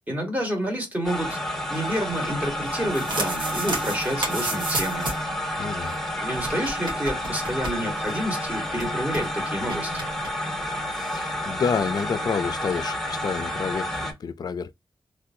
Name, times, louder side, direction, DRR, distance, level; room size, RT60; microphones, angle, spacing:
voice 1, 0.1-1.4 1.7-5.1 6.2-10.0, equal, 20° right, 1.4 m, -29 dB
sound 1, 1.0-14.1, left 1 dB, 5° left, 0.8 m, -30 dB
sound 2, 2.7-5.3 5.6-5.7 5.9-6.0 6.3-8.2 8.5-8.6 8.8-9.2 9.7-10.3, right 2 dB, 70° right, 1.4 m, -32 dB
voice 2, 5.6-5.9 11.0-14.7, left 6 dB, 55° left, 0.4 m, -29 dB
3.3 x 2.5 x 2.6 m
wide cardioid pair, 165°, 8 cm